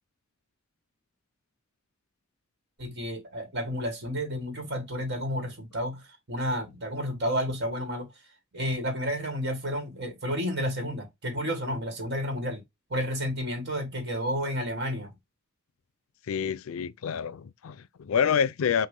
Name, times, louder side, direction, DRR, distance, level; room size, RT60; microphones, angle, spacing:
voice 1, 2.8-8.1 8.5-12.6 12.9-15.1, equal, 55° right, 1.6 m, -31 dB
voice 2, 16.3-18.9, left 7 dB, 80° left, 0.4 m, -27 dB
5.9 x 2.4 x 3.6 m
head